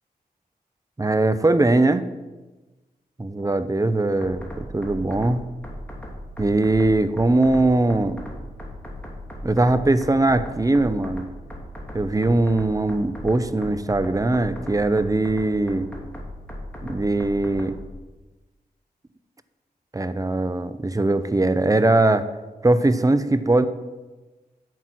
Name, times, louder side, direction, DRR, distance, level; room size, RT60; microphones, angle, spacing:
voice 1, 1.0-2.0 3.2-5.4 6.4-8.2 9.4-11.3 11.9-15.9 16.8-17.8 19.9-22.3 22.6-23.7, right 2 dB, 20° right, 12 dB, 0.7 m, -21 dB
sound 1, 4.2-17.8, equal, 10° left, 2.9 m, -38 dB
9.1 x 8.0 x 6.0 m, 1.2 s
cardioid pair, 60°, 16 cm